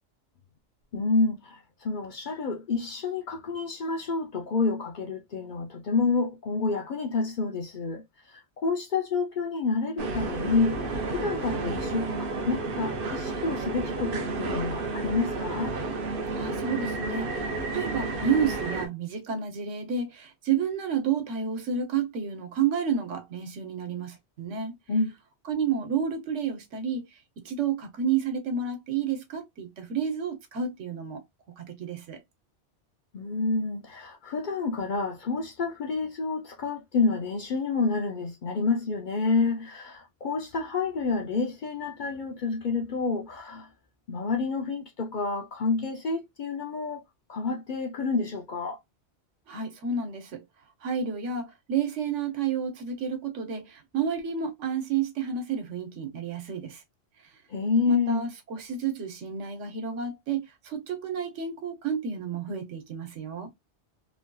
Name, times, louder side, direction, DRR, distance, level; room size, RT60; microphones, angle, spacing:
voice 1, 0.9-15.8 24.9-25.1 33.1-43.7 44.1-47.0 47.3-48.8 57.5-58.3, left 4 dB, 55° left, 0.6 m, -29 dB
sound 1, 10.0-18.9, right 3 dB, 55° right, 0.8 m, -31 dB
voice 2, 16.3-24.7 25.5-27.0 27.4-31.2 31.5-32.2 49.5-50.4 50.8-56.8 57.9-63.5, right 6 dB, 90° right, 1.2 m, -30 dB
3.1 x 2.6 x 2.2 m
omnidirectional pair, 1.2 m